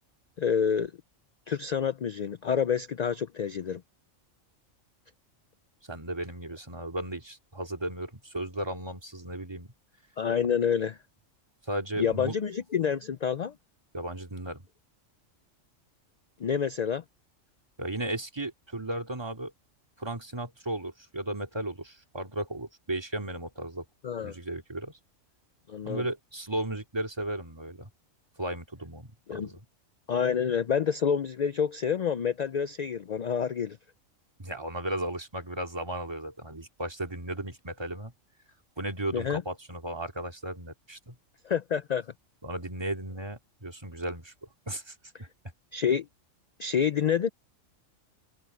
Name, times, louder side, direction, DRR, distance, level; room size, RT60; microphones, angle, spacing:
voice 1, 0.4-0.9 1.5-3.8 10.2-11.0 12.0-13.5 16.4-17.0 24.0-24.3 25.7-26.1 29.3-29.5 30.1-33.8 39.1-39.4 41.4-42.1 45.7-46.1 46.6-47.3, left 7 dB, 70° left, 0.4 m, -28 dB
voice 2, 5.9-9.7 11.6-12.3 13.9-14.6 17.8-19.5 20.0-23.9 24.2-25.0 25.8-27.9 28.4-29.6 34.4-38.1 38.8-41.2 42.4-44.3 44.7-45.3, right 1 dB, 20° right, 2.4 m, -35 dB
omnidirectional pair, 1.3 m